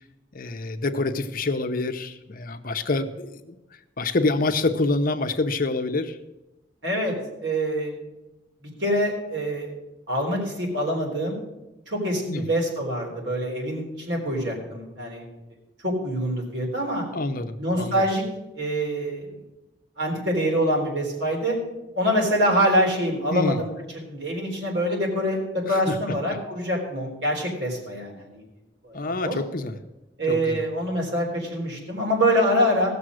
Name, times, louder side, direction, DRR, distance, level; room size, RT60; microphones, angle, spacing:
voice 1, 0.3-3.6 4.0-6.2 12.3-12.5 17.1-18.0 23.3-23.6 25.7-26.0 28.9-29.8 30.3-30.6, left 2 dB, 50° left, 8 dB, 0.8 m, -26 dB
voice 2, 6.8-7.1 7.4-7.9 8.6-9.7 10.1-11.4 11.9-15.2 15.8-17.0 17.6-18.2 18.5-19.3 20.0-21.6 22.0-28.4 28.8-29.4 30.2-32.9, equal, 65° right, 0 dB, 3.8 m, -25 dB
16.0 x 6.9 x 6.3 m, 1.0 s
head